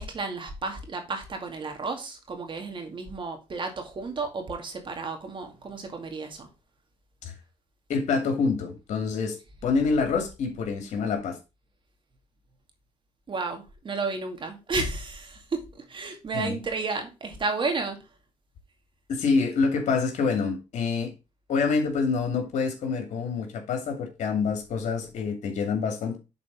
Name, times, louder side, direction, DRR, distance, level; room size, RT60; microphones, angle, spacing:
voice 1, 0.0-6.5 13.3-18.0, right 3 dB, 45° right, 2.2 m, -32 dB
voice 2, 7.9-9.4 9.6-11.4 16.3-16.6 19.1-21.1 21.5-26.2, left 5 dB, 75° left, 2.4 m, -26 dB
7.4 x 4.2 x 5.2 m
cardioid pair, 85°, 12 cm